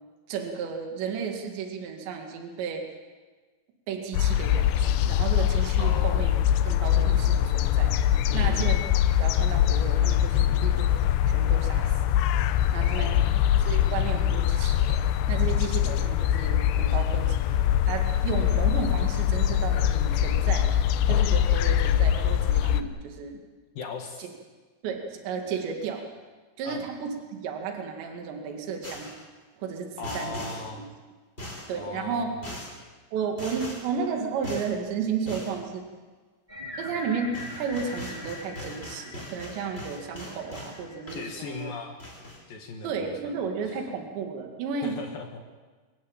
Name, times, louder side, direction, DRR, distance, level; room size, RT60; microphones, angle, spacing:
voice 1, 0.3-2.8 3.9-6.4 6.7-8.8 9.2-12.0 12.7-13.2 13.6-15.0 15.3-17.5 17.8-20.7 21.1-23.4 24.2-24.3 24.8-26.0 26.6-27.1 27.4-29.2 29.6-30.5 30.7-30.9 31.7-32.3 33.1-35.8 36.8-41.7 42.8-45.0, right 6 dB, 70° right, 3 dB, 4.3 m, -33 dB
sound 1, 4.1-22.8, left 11 dB, 80° left, 2.8 m, -23 dB
voice 2, 5.8-6.3 8.3-8.7 12.8-13.4 23.7-24.3 26.6-26.9 30.0-30.9 31.7-32.4 41.1-42.0 42.5-43.3 43.6-43.8 44.8-45.4, left 5 dB, 60° left, 3 dB, 2.9 m, -38 dB
sound 2, 28.8-29.3 30.0-30.7 31.4-31.8 32.4-32.8 33.4-33.9 34.4-34.7 35.3-35.6 37.0-37.1 37.3-40.8 41.1-41.7 42.0-42.4, left 1 dB, 15° left, 4.7 m, -40 dB
sound 3, 36.5-41.7, left 2 dB, 15° right, 2.0 m, -43 dB
25.0 x 14.0 x 8.9 m, 1.4 s
omnidirectional pair, 5.4 m